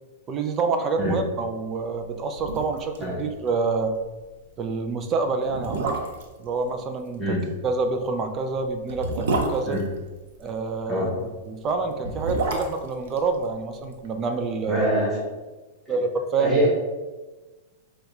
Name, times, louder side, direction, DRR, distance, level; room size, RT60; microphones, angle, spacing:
voice 1, 0.3-3.9 4.6-6.0 6.4-9.8 10.4-11.1 11.4-14.9 15.9-16.6, right 4 dB, 20° right, 6 dB, 0.4 m, -27 dB
sound 1, 2.0-2.1 2.4-3.0 3.3-3.4 3.8-4.0 4.7-4.8 5.4-6.4 7.9-10.6 11.8-14.1 14.3-14.4, right 2 dB, 65° right, 0.7 m, -29 dB
voice 2, 14.7-15.2 16.4-16.7, equal, ahead, -7 dB, 1.2 m, -24 dB
5.2 x 2.3 x 4.0 m, 1.2 s
supercardioid pair, 165°, 0 cm